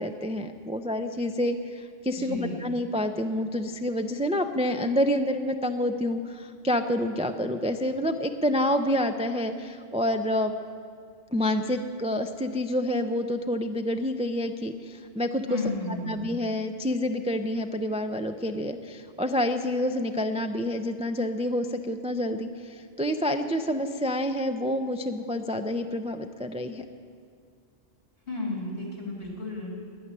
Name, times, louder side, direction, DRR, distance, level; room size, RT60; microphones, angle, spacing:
voice 1, 0.0-10.5 11.3-15.6 16.1-26.8, left 1 dB, 10° right, 7 dB, 0.4 m, -28 dB
voice 2, 2.1-2.6 15.5-16.3 28.3-29.7, left 2 dB, 65° left, -2 dB, 3.5 m, -33 dB
12.0 x 10.0 x 9.6 m, 2.1 s
omnidirectional pair, 1.1 m